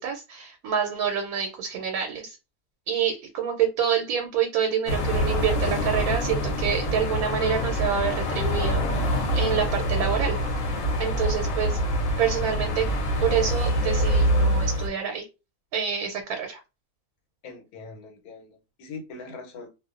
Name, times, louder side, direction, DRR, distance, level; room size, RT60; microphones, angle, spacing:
voice 1, 0.0-2.4 2.9-10.4 11.0-11.8 12.2-12.9 13.2-15.3 15.7-16.6, right 8 dB, 90° right, 3 dB, 1.1 m, -27 dB
sound 1, 4.9-14.9, equal, 65° left, 1.0 m, -25 dB
voice 2, 9.2-9.6 17.4-19.7, left 3 dB, 85° left, 3 dB, 1.2 m, -41 dB
2.6 x 2.1 x 2.4 m, 0.28 s
omnidirectional pair, 1.5 m